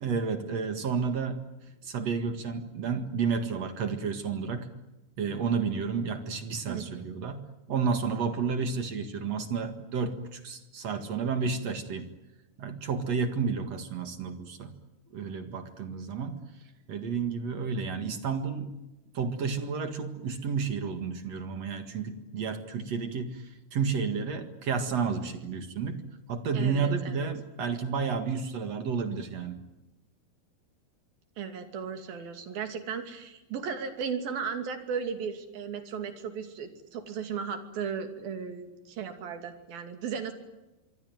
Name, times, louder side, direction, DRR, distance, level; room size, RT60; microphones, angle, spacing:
voice 1, 0.0-4.7 5.2-12.1 12.6-14.7 15.1-16.4 16.9-18.7 19.1-26.0 26.3-29.6, right 5 dB, 50° right, 8 dB, 2.5 m, -31 dB
voice 2, 6.7-7.1 26.5-27.3 31.4-40.3, right 6 dB, 65° right, 7 dB, 4.4 m, -36 dB
25.5 x 24.0 x 9.3 m, 1.0 s
omnidirectional pair, 4.6 m